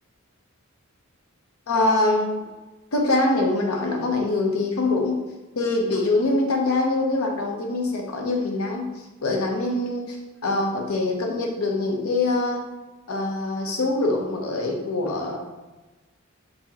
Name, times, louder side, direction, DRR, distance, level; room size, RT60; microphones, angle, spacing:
voice 1, 1.7-2.4 2.9-5.2 5.6-8.9 9.2-10.2 10.4-12.6 13.1-15.4, left 2 dB, 90° left, 1 dB, 0.7 m, -24 dB
4.6 x 2.1 x 2.8 m, 1.1 s
head